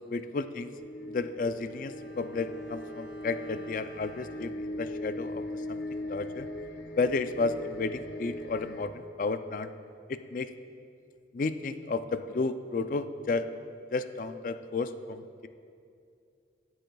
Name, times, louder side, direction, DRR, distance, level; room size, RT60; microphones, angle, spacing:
voice 1, 0.1-0.8 1.1-6.5 7.0-9.7 10.1-10.5 11.3-13.5 13.9-15.5, left 3 dB, 50° left, 10 dB, 0.4 m, -32 dB
sound 1, 0.8-8.9, left 1 dB, 80° left, 0.7 m, -39 dB
Bowed string instrument, 1.3-5.8 6.1-6.2, right 1 dB, 70° right, 1.9 m, -55 dB
18.5 x 7.7 x 2.3 m, 2.4 s
head